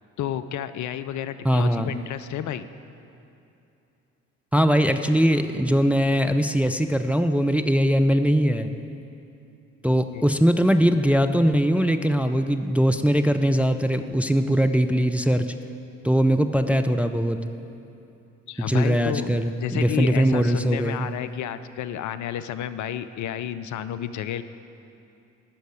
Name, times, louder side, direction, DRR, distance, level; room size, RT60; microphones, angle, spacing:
voice 1, 0.2-2.7 10.1-10.3 18.5-24.4, left 10 dB, 50° left, 12 dB, 0.5 m, -31 dB
voice 2, 1.4-1.9 4.5-8.7 9.8-15.5 16.0-17.4 18.7-21.1, equal, 5° right, 7 dB, 0.5 m, -21 dB
9.9 x 6.4 x 8.0 m, 2.8 s
figure-of-eight pair, 45°, 38 cm